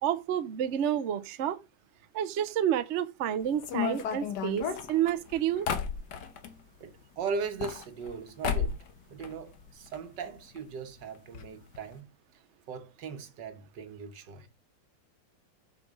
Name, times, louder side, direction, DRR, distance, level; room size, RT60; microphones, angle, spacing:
voice 1, 0.0-1.6 2.1-5.7, right 10 dB, 60° right, 0.8 m, -29 dB
sound 1, 3.6-6.5 7.4-8.2 8.4-8.9 9.2-10.0 10.3-10.4 10.6-10.7 11.3-11.5 11.7-11.9, left 7 dB, 75° left, 1.6 m, -33 dB
voice 2, 6.8-8.8 9.1-12.1 12.7-14.5, right 5 dB, 85° right, 1.8 m, -38 dB
7.0 x 5.8 x 5.2 m
omnidirectional pair, 1.9 m